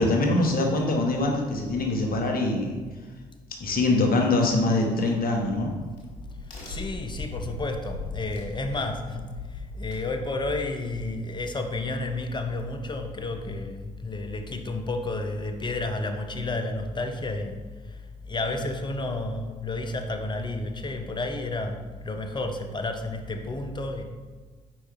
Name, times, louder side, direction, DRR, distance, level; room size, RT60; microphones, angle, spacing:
voice 1, 0.0-2.7 3.6-5.7, left 2 dB, 45° left, 1 dB, 1.1 m, -23 dB
Crack, 5.4-10.6, left 3 dB, 85° left, 1.3 m, -40 dB
voice 2, 6.4-24.1, left 2 dB, 25° left, 5 dB, 0.7 m, -31 dB
4.8 x 4.1 x 4.8 m, 1.4 s
figure-of-eight pair, 45°, 20 cm